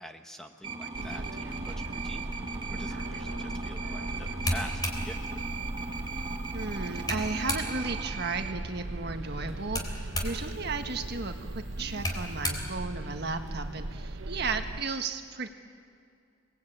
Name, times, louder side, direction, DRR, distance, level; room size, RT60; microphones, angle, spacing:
voice 1, 0.0-2.3 2.7-5.4, equal, 5° left, 4 dB, 1.1 m, -45 dB
sound 1, 0.6-8.5, right 3 dB, 25° right, 1.5 m, -38 dB
sound 2, 0.9-14.8, right 2 dB, 75° right, 1.0 m, -39 dB
sound 3, 4.2-8.0 9.5-13.7, left 1 dB, 20° left, 3.5 m, -37 dB
voice 2, 6.5-15.5, right 4 dB, 55° right, 6 dB, 1.6 m, -34 dB
29.0 x 20.0 x 8.7 m, 2.3 s
head